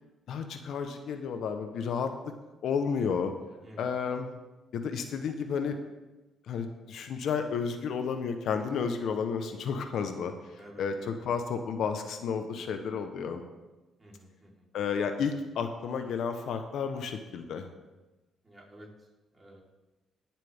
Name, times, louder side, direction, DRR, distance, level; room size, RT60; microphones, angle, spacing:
voice 1, 0.3-2.1 2.6-3.3 3.8-4.3 4.7-5.8 6.5-13.4 14.7-17.7, left 6 dB, 70° left, 7 dB, 1.0 m, -32 dB
voice 2, 3.6-4.0 10.5-10.8 14.0-14.7 18.4-19.1 19.3-19.6, equal, 20° right, -3 dB, 3.9 m, -51 dB
18.5 x 7.5 x 3.6 m, 1.1 s
cardioid pair, 90°, 0 cm